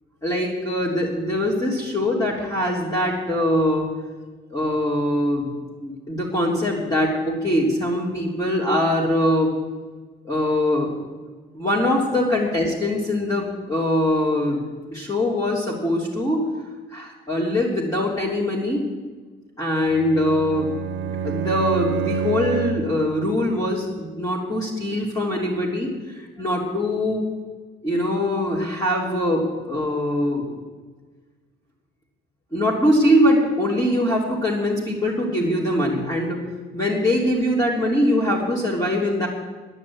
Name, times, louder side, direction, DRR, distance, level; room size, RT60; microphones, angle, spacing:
voice 1, 0.2-3.9 4.5-5.5 5.8-9.5 10.2-10.9 11.5-14.6 14.9-16.4 16.9-18.8 19.6-20.7 21.0-27.3 27.8-30.5 32.5-36.4 36.7-39.3, left 1 dB, 15° left, -4 dB, 3.3 m, -22 dB
Bowed string instrument, 19.9-23.0, right 7 dB, 70° right, 0.8 m, -28 dB
10.5 x 9.6 x 8.6 m, 1.4 s
cardioid pair, 90°, 20 cm